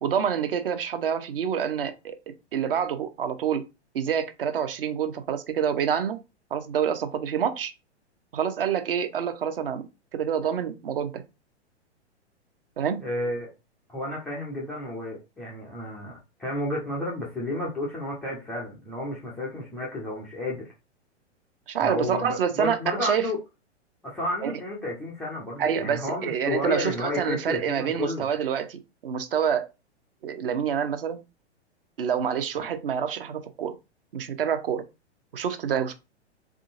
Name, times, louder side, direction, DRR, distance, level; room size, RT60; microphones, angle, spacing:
voice 1, 0.0-2.2 2.5-3.6 3.9-6.2 6.5-7.7 8.3-9.9 10.1-11.2 12.8-13.0 21.7-23.3 24.4-24.5 25.6-29.7 30.2-31.2 32.0-33.7 34.1-34.8 35.3-35.9, right 8 dB, 55° right, 0.7 m, -27 dB
voice 2, 13.0-13.5 13.9-20.7 21.8-23.4 24.0-28.3 32.6-32.7, left 1 dB, 5° left, 0.3 m, -31 dB
3.7 x 3.7 x 2.5 m
figure-of-eight pair, 110°, 35 cm